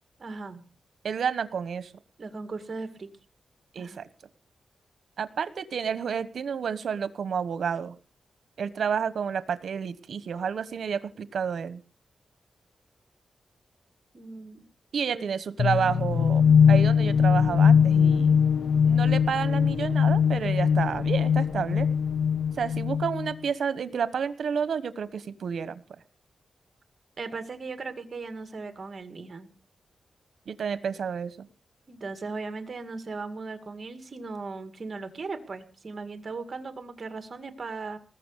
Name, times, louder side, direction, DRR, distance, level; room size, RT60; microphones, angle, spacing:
voice 1, 0.2-0.6 2.2-3.1 3.8-4.0 14.1-14.6 15.1-15.3 27.2-29.5 31.9-38.0, right 4 dB, 40° right, 8 dB, 2.1 m, -37 dB
voice 2, 1.0-1.9 3.7-4.1 5.2-7.9 8.6-11.8 14.9-18.4 18.9-21.9 22.6-25.8 30.5-31.5, right 7 dB, 70° right, 14 dB, 1.2 m, -30 dB
sound 1, 15.6-23.3, left 7 dB, 65° left, 0.7 m, -21 dB
20.0 x 7.1 x 8.2 m, 0.38 s
wide cardioid pair, 165°, 0 cm